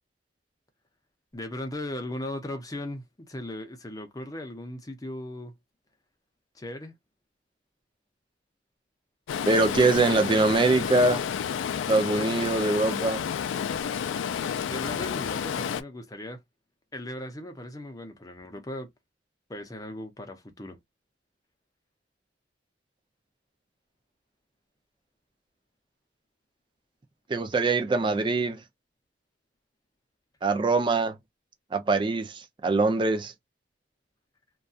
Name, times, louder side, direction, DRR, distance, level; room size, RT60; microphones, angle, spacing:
voice 1, 1.3-5.6 6.5-6.9 14.7-16.4 16.9-18.9 19.5-20.8, left 1 dB, 20° left, 0.6 m, -37 dB
Stream, 9.3-15.8, left 8 dB, 80° left, 0.3 m, -30 dB
voice 2, 9.5-11.2 11.9-13.2 27.3-28.6 30.4-31.1 31.7-33.3, right 3 dB, 25° right, 0.4 m, -23 dB
2.6 x 2.3 x 2.3 m
head